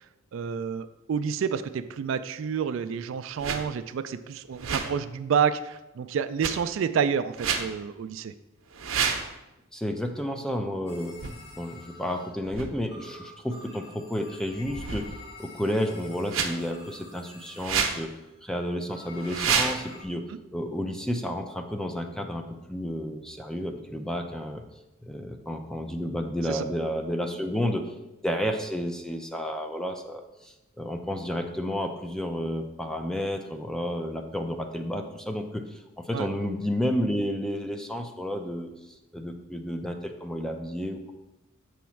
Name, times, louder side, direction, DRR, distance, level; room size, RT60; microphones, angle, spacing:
voice 1, 0.3-8.3 20.3-20.4 26.5-26.6 36.1-36.3, right 7 dB, 65° right, 11 dB, 0.3 m, -29 dB
sound 1, 3.4-3.6 4.5-5.0 6.4-6.5 7.3-7.7 8.7-9.3 11.2-11.3 12.5-12.7 14.6-15.3 16.3-16.5 17.6-18.0 19.2-19.8, right 6 dB, 85° right, 0.7 m, -28 dB
voice 2, 9.7-11.2 11.5-15.1 15.4-18.1 18.4-20.2 20.5-24.6 25.0-27.9 28.2-41.1, equal, 5° left, 5 dB, 0.5 m, -31 dB
sound 2, 10.9-12.6 12.9-18.5 18.9-20.0, left 2 dB, 55° left, 1.6 m, -48 dB
7.1 x 3.1 x 5.7 m, 0.97 s
head